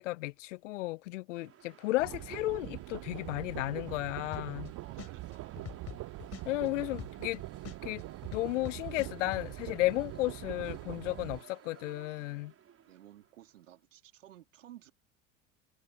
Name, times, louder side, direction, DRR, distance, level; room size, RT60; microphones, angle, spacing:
voice 1, 0.0-4.7 6.5-7.4 7.8-8.0 8.3-12.5, left 19 dB, 75° left, 0.5 m, -34 dB
sound 1, 1.3-13.6, right 9 dB, 35° right, 5.0 m, -57 dB
sound 2, 2.0-11.4, right 18 dB, 55° right, 7.4 m, -43 dB
sound 3, 4.3-4.7 5.0-7.3 7.6-9.4, left 9 dB, 40° left, 3.9 m, -44 dB
voice 2, 4.8-5.6 12.9-14.9, right 13 dB, 75° right, 3.6 m, -54 dB
figure-of-eight pair, 70°, 38 cm